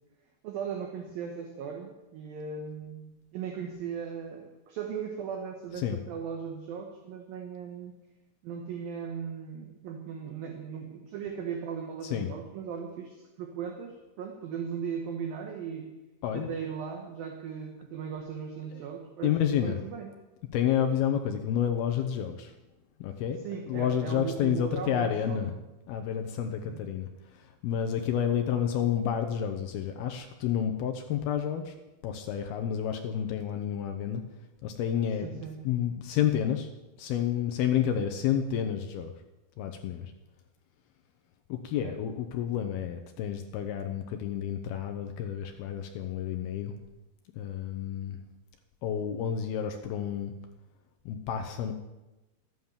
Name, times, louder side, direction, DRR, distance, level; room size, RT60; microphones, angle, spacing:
voice 1, 0.4-7.9 8.4-15.9 16.3-20.1 23.4-25.5 26.6-26.8 35.2-35.6 41.8-42.0, right 7 dB, 65° right, 3 dB, 2.5 m, -38 dB
voice 2, 19.2-19.8 20.5-22.5 23.0-23.4 23.7-25.5 25.9-27.1 27.4-31.7 32.0-34.2 34.6-36.7 37.0-39.1 39.6-40.1 41.5-46.7 47.4-48.2 48.8-50.3 51.1-51.7, left 9 dB, 75° left, 6 dB, 2.4 m, -30 dB
13.5 x 9.6 x 7.2 m, 1.0 s
omnidirectional pair, 5.3 m